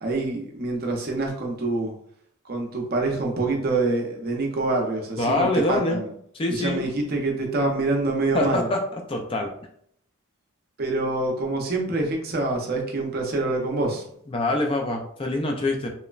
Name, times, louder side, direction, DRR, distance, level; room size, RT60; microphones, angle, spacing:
voice 1, 0.0-1.9 2.5-6.1 6.5-8.7 10.8-14.0, right 2 dB, 45° right, 1 dB, 0.5 m, -26 dB
voice 2, 5.2-6.0 6.3-6.9 8.3-9.5 14.3-15.9, left 2 dB, 25° left, 2 dB, 0.3 m, -25 dB
3.0 x 2.0 x 2.4 m, 0.66 s
head